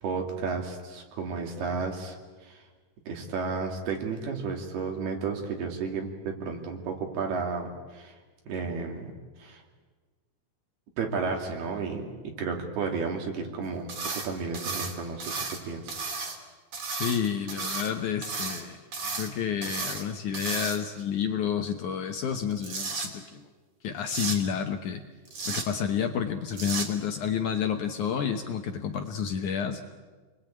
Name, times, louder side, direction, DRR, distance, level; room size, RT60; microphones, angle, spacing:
voice 1, 0.0-2.2 2.4-2.6 3.1-8.1 8.5-9.1 9.4-9.6 11.0-12.1 12.4-15.3 15.6-16.1, right 5 dB, 70° right, 2 dB, 4.5 m, -32 dB
sound 1, 13.9-14.3 14.5-15.6 15.9-16.4 16.7-17.9 18.2-18.6 18.9-19.3 19.6-20.0 20.3-21.0 22.3-23.1 24.1-24.4 25.3-25.7 26.5-26.9, right 4 dB, 45° right, 3.6 m, -33 dB
voice 2, 16.9-23.5 23.8-25.0 25.5-29.8, left 7 dB, 65° left, 5 dB, 2.0 m, -30 dB
28.5 x 21.5 x 9.0 m, 1.4 s
omnidirectional pair, 4.7 m